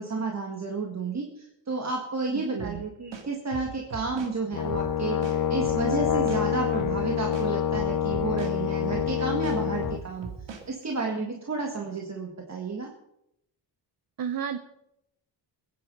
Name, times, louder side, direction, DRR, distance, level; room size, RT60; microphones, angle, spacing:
voice 1, 0.0-10.3 10.7-12.9, right 3 dB, 40° right, 1 dB, 1.9 m, -31 dB
voice 2, 2.3-2.8 14.2-14.6, right 8 dB, 55° right, 10 dB, 1.0 m, -32 dB
sound 1, 2.6-2.8 3.1-4.3 4.7-4.9 5.2-6.4 6.8-7.0 7.3-8.5 8.9-9.1 9.4-10.6, right 5 dB, 80° right, 2.7 m, -39 dB
Brass instrument, 4.5-10.0, left 8 dB, 50° left, 0.9 m, -27 dB
21.5 x 9.6 x 5.5 m, 0.80 s
wide cardioid pair, 135°, 43 cm